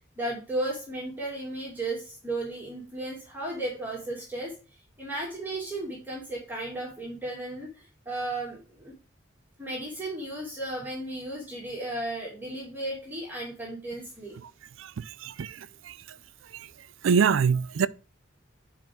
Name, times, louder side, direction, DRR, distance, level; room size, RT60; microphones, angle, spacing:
voice 1, 0.2-4.6 5.0-8.9 9.6-14.4, right 1 dB, 10° right, 2.4 m, -34 dB
voice 2, 15.2-15.5 17.0-17.9, right 6 dB, 80° right, 0.4 m, -22 dB
9.5 x 4.7 x 3.5 m
head